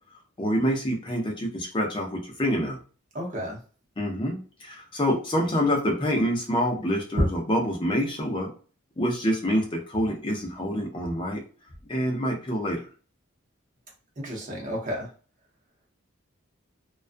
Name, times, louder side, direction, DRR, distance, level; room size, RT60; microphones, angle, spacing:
voice 1, 0.4-2.8 4.0-8.5 9.0-11.4 11.9-12.8, equal, 25° left, 1 dB, 0.5 m, -26 dB
voice 2, 3.1-3.6 7.2-7.3 14.2-15.1, equal, 40° right, -1 dB, 0.7 m, -28 dB
2.3 x 2.2 x 2.5 m, 0.38 s
head